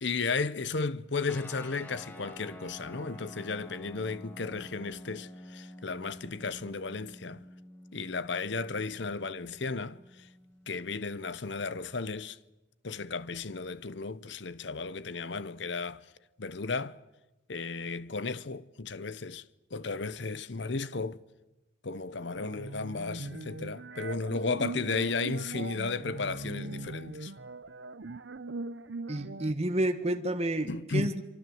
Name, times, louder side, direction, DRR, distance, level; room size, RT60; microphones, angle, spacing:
voice 1, 0.0-7.4 7.9-10.0 10.7-12.4 12.8-16.0 16.4-17.0 17.5-19.4 19.7-21.2 21.8-27.3 30.7-31.1, left 4 dB, 65° left, 0.8 m, -34 dB
sound 1, 1.3-12.2, left 1 dB, 10° left, 2.9 m, -49 dB
sound 2, 22.3-29.5, right 2 dB, 65° right, 0.8 m, -40 dB
voice 2, 29.1-31.2, right 1 dB, 35° right, 1.6 m, -30 dB
24.5 x 24.5 x 7.9 m
head